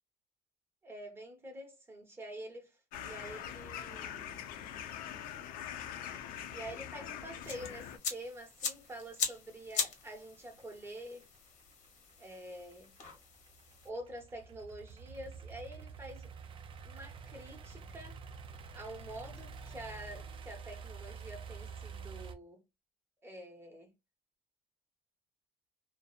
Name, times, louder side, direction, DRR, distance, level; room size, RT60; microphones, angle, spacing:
voice 1, 0.8-4.4 6.5-11.3 12.2-12.9 13.8-16.3 16.8-18.2 18.7-22.6 23.2-23.9, right 1 dB, 15° right, 1.0 m, -47 dB
sound 1, 2.9-8.0, left 9 dB, 80° left, 0.5 m, -43 dB
sound 2, 7.4-13.9, left 6 dB, 55° left, 0.9 m, -41 dB
sound 3, 7.9-22.3, right 5 dB, 35° right, 0.5 m, -49 dB
2.7 x 2.1 x 2.3 m
cardioid pair, 130°, 15 cm